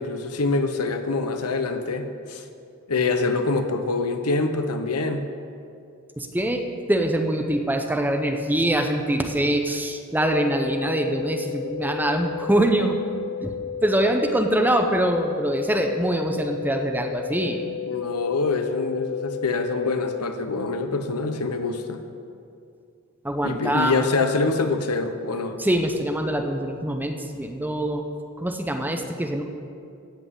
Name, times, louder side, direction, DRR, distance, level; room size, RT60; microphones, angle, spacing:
voice 1, 0.0-2.4 2.9-5.2 17.8-22.0 23.4-25.6, left 3 dB, 90° left, 7 dB, 1.0 m, -25 dB
voice 2, 6.2-13.0 13.4-13.5 13.8-17.6 23.2-23.9 25.6-28.0 28.4-29.4, right 1 dB, 10° right, 4 dB, 0.8 m, -24 dB
sound 1, 10.2-20.2, left 7 dB, 45° left, 0.5 m, -33 dB
15.5 x 5.8 x 8.2 m, 2.4 s
head